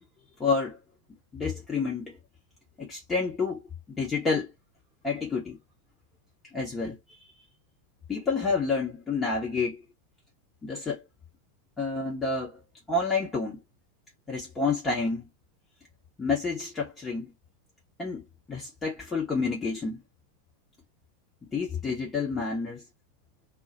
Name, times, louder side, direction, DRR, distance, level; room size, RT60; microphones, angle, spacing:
voice 1, 0.4-0.8 1.3-2.2 2.8-3.6 3.9-4.5 5.0-5.6 6.5-7.3 8.1-9.8 10.6-11.0 11.8-12.6 12.9-13.6 14.3-15.3 16.2-17.3 18.0-20.0 21.5-22.8, left 4 dB, 15° left, 1.0 m, -29 dB
2.4 x 2.2 x 2.6 m
figure-of-eight pair, 85°, 0 cm